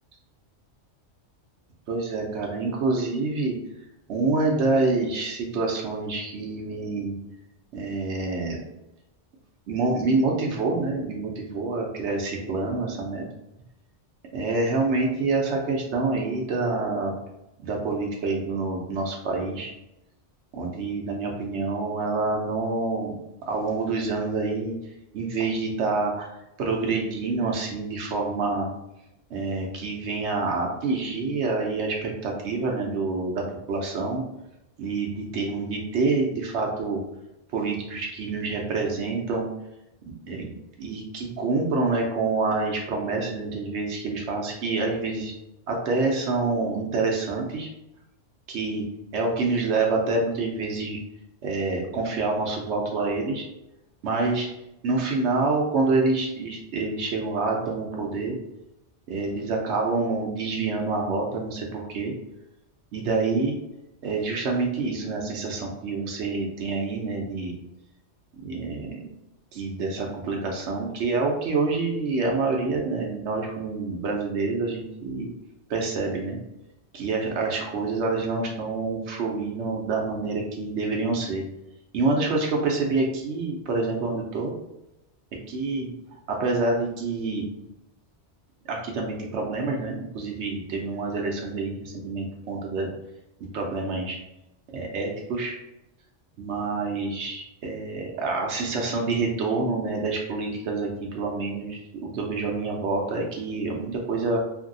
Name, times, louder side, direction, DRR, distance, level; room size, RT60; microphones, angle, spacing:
voice 1, 1.9-3.6 4.1-7.1 7.7-8.6 9.7-13.2 14.3-17.1 17.6-19.7 20.5-23.1 23.5-24.7 25.1-26.3 26.6-28.7 29.3-34.2 34.8-37.0 37.5-39.5 40.1-45.3 45.7-47.7 48.5-48.8 49.1-51.0 51.4-53.4 54.0-54.5 54.8-58.4 59.1-62.1 62.9-63.5 64.0-67.6 68.4-69.1 69.5-75.3 75.7-76.4 76.9-81.4 81.9-84.5 85.5-85.9 86.3-87.5 88.7-92.9 93.4-94.2 94.7-95.5 96.4-104.4, right 3 dB, 75° right, 0 dB, 0.9 m, -27 dB
2.8 x 2.6 x 2.6 m, 0.89 s
omnidirectional pair, 1.2 m